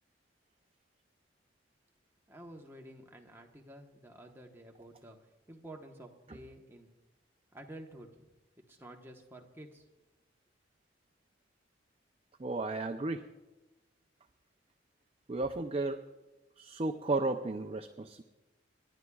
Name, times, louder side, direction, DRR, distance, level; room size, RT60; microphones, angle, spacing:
voice 1, 2.3-5.2 5.5-6.9 7.5-8.3 8.7-9.9, right 1 dB, 10° right, 1 dB, 1.1 m, -51 dB
voice 2, 12.4-13.3 15.3-16.0 16.6-18.2, right 2 dB, 30° right, 6 dB, 0.5 m, -34 dB
28.0 x 11.0 x 2.3 m, 1.1 s
head